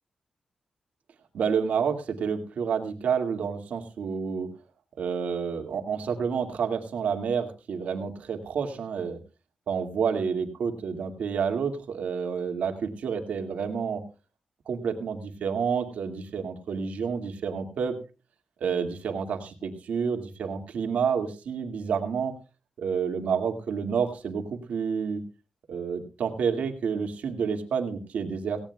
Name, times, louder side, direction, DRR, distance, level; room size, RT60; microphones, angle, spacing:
voice 1, 1.3-4.5 5.0-9.2 9.7-14.0 14.7-18.0 18.6-22.3 22.8-25.2 25.7-28.6, right 6 dB, 90° right, 5 dB, 2.1 m, -29 dB
17.5 x 17.0 x 2.3 m, 0.31 s
cardioid pair, 100°, 2 cm